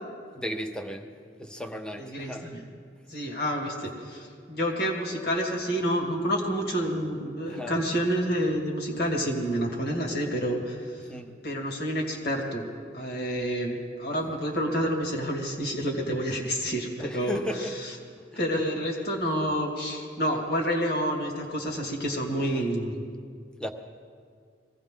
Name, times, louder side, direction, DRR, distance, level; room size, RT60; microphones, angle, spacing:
voice 1, 0.3-2.5 7.5-7.8 11.1-11.4 17.0-17.8 18.3-18.4 22.4-22.7 23.6-23.7, equal, 5° left, 6 dB, 0.7 m, -35 dB
voice 2, 2.0-2.6 3.1-11.1 11.4-12.6 12.9-17.4 18.3-22.9, equal, 55° left, 0 dB, 2.3 m, -29 dB
23.0 x 16.5 x 3.8 m, 2.1 s
head